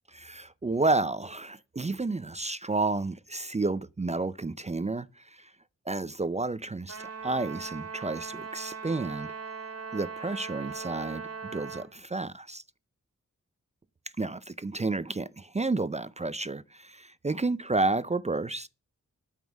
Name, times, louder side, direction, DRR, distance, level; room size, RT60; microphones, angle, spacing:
voice 1, 0.2-5.5 5.9-9.3 9.9-12.6 14.2-18.7, right 3 dB, 25° right, 0.4 m, -31 dB
Trumpet, 6.9-11.9, right 5 dB, 55° right, 1.7 m, -39 dB
9.2 x 7.4 x 6.1 m
wide cardioid pair, 105°, 30 cm